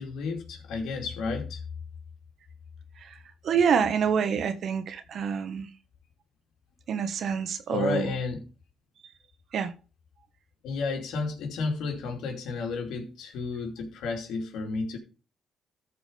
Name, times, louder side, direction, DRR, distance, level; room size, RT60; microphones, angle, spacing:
voice 1, 0.0-1.6 7.7-8.5 10.6-15.0, left 4 dB, 85° left, 2.8 m, -32 dB
voice 2, 3.4-5.7 6.9-8.1 9.5-9.7, right 7 dB, 65° right, 1.3 m, -27 dB
14.0 x 4.9 x 5.1 m
cardioid pair, 90°, 0 cm